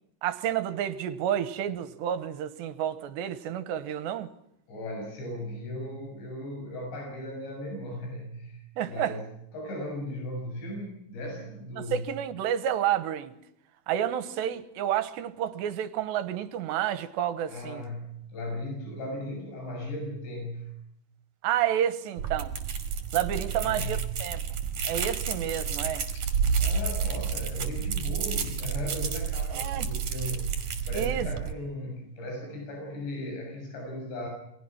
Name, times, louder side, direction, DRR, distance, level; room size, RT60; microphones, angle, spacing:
voice 1, 0.2-4.3 8.8-9.1 11.8-13.3 13.9-17.9 21.4-22.5 23.1-24.4 24.8-26.1 29.5-29.9 30.9-31.3, right 10 dB, 80° right, 3.4 m, -30 dB
voice 2, 4.7-9.3 9.5-12.0 17.5-20.7 23.3-24.1 26.1-30.6 30.9-34.3, left 1 dB, 75° left, 9.1 m, -37 dB
sound 1, 22.2-31.5, right 6 dB, 45° right, 3.9 m, -30 dB
29.0 x 23.5 x 6.2 m
omnidirectional pair, 5.1 m